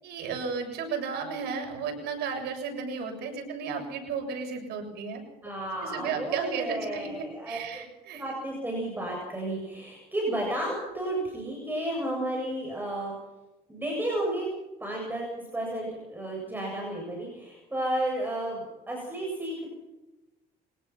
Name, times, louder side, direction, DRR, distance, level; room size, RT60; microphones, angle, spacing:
voice 1, 0.0-5.2 5.8-8.3, right 5 dB, 80° right, 3 dB, 7.3 m, -34 dB
voice 2, 5.4-7.9 8.1-13.1 13.7-14.5 14.8-19.7, right 1 dB, 10° right, -1 dB, 7.8 m, -32 dB
24.0 x 18.5 x 5.9 m, 1.0 s
cardioid pair, 110°, 17 cm